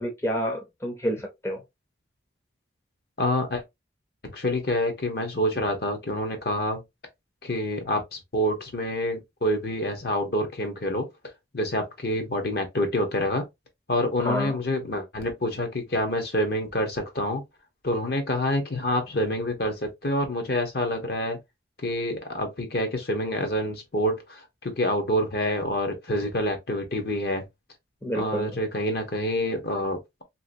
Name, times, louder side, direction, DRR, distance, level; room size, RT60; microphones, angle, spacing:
voice 1, 0.0-1.6 14.2-14.6 28.0-28.6, equal, 15° left, 0.5 m, -29 dB
voice 2, 3.2-3.6 4.2-6.8 7.4-11.1 11.5-13.4 13.9-17.4 17.8-21.4 21.8-27.5 28.1-30.2, left 1 dB, 55° left, 0.9 m, -27 dB
2.9 x 2.8 x 2.5 m
head